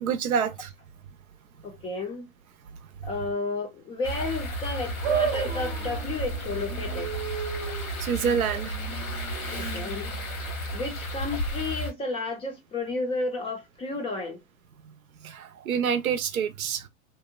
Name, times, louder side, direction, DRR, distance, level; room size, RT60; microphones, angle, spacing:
voice 1, 0.0-0.7 8.0-8.8 9.5-9.7 15.2-16.9, right 7 dB, 85° right, 0.6 m, -27 dB
voice 2, 1.6-2.3 3.0-7.1 9.6-10.1 10.7-14.4, left 3 dB, 15° left, 0.4 m, -32 dB
sound 1, 4.0-11.9, equal, 90° left, 1.2 m, -33 dB
sound 2, 5.0-11.5, right 7 dB, 45° right, 0.7 m, -34 dB
2.8 x 2.1 x 2.2 m
hypercardioid pair, 110°, 41 cm